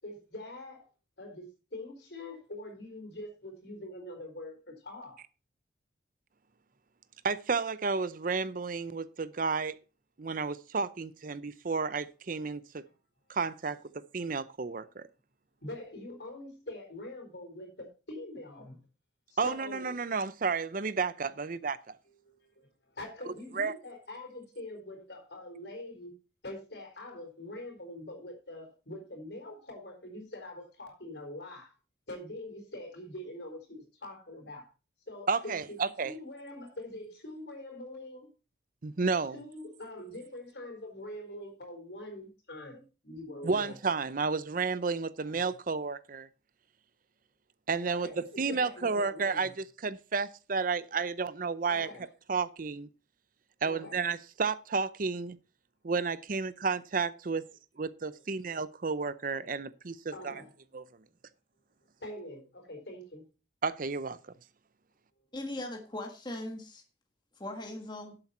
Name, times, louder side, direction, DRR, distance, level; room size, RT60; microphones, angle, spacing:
voice 1, 0.0-0.9 1.2-5.2 12.8-12.9 15.6-18.9 19.3-19.9 22.1-26.1 26.4-31.8 32.1-34.7 35.0-35.8 36.0-38.3 39.3-43.9 45.2-45.5 47.9-49.5 51.7-52.1 53.6-54.0 58.3-58.4 60.1-60.5 62.0-63.3, left 1 dB, 60° left, 4.4 m, -44 dB
voice 2, 7.2-9.7 10.2-12.8 13.3-13.8 14.1-15.0 19.4-21.8 23.6-23.7 35.3-36.1 38.8-39.4 43.4-46.3 47.7-48.1 48.4-49.5 49.8-51.9 52.3-52.9 53.6-55.4 55.8-57.4 57.8-60.3 60.7-60.8 63.6-64.2, right 4 dB, 45° right, 0.6 m, -31 dB
voice 3, 65.3-66.8 67.4-68.2, left 1 dB, 25° left, 1.6 m, -39 dB
12.0 x 7.8 x 4.3 m
head